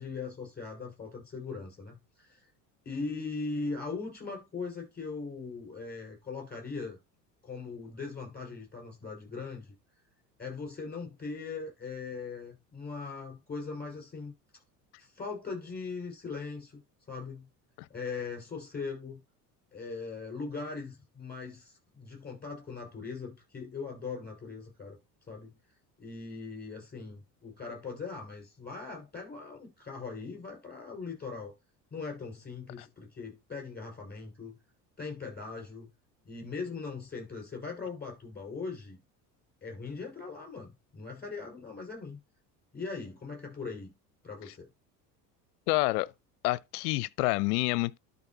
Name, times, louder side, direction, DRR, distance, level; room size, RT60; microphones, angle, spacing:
voice 1, 0.0-2.5 2.9-7.0 7.4-9.7 10.4-14.3 15.0-16.8 17.1-17.5 17.9-19.2 19.7-25.0 25.3-25.5 26.0-31.5 31.9-34.6 35.0-35.9 36.3-39.0 39.6-42.2 42.7-43.9 44.2-44.7, left 4 dB, 20° left, 5.4 m, -40 dB
voice 2, 45.7-46.1 46.4-48.0, left 21 dB, 65° left, 0.6 m, -28 dB
12.0 x 4.2 x 2.8 m
hypercardioid pair, 70°, 49 cm